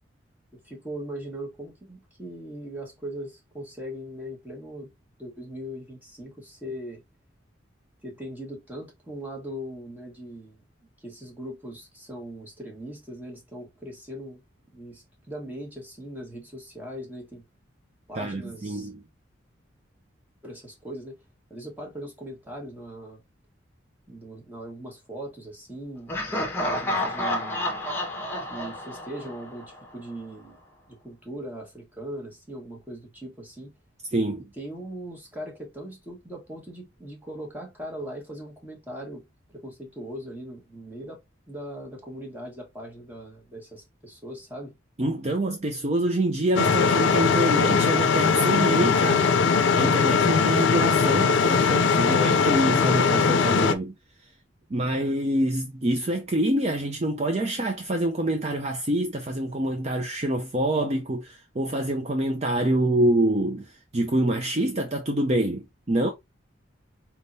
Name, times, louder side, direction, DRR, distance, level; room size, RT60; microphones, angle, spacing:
voice 1, 0.6-4.9 5.2-7.0 8.0-10.6 11.0-14.4 14.7-17.4 18.1-18.9 20.4-21.2 21.5-23.2 24.1-27.8 28.5-30.6 30.9-33.7 34.6-41.2 41.5-44.7, equal, 10° right, 1.4 m, -39 dB
voice 2, 18.1-19.0 34.1-34.5 45.0-49.3 49.7-53.9 54.7-66.1, right 1 dB, 35° right, 0.6 m, -26 dB
Laughter, 26.1-30.0, left 1 dB, 10° left, 1.1 m, -30 dB
sound 1, 46.6-53.7, left 5 dB, 70° left, 0.5 m, -20 dB
4.3 x 3.6 x 2.7 m
head